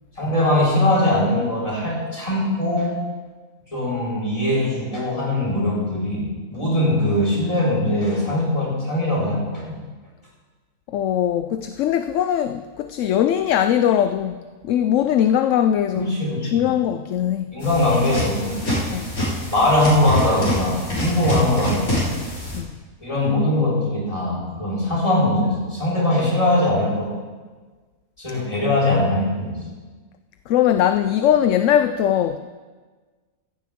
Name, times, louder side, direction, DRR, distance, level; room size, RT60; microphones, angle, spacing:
voice 1, 0.2-3.0 3.7-9.8 15.9-16.7 17.5-18.6 19.5-22.2 23.0-27.1 28.2-29.6, left 1 dB, 25° left, -5 dB, 4.5 m, -21 dB
voice 2, 10.9-16.1 16.4-17.6 18.9-19.1 22.5-22.7 30.5-32.4, left 10 dB, 70° left, 10 dB, 0.9 m, -20 dB
sound 1, 17.6-22.6, equal, 85° left, 4.4 m, -26 dB
16.0 x 14.5 x 3.6 m, 1.4 s
omnidirectional pair, 1.4 m